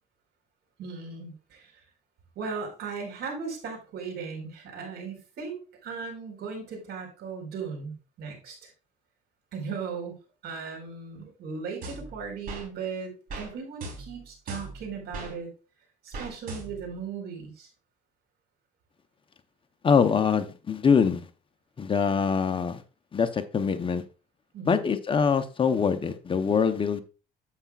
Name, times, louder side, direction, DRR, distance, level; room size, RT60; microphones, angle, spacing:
voice 1, 0.8-1.8 2.3-8.7 9.5-10.1 10.4-15.5 16.0-17.7 24.5-24.8, right 5 dB, 75° right, 4.6 m, -37 dB
sound 1, 11.8-12.7 13.3-13.5 13.8-15.3 16.1-16.9, right 2 dB, 60° right, 3.8 m, -39 dB
voice 2, 19.8-21.3 21.8-22.8 23.1-24.0 24.6-27.0, left 6 dB, 30° left, 0.8 m, -24 dB
9.8 x 8.2 x 2.4 m
cardioid pair, 110°, 17 cm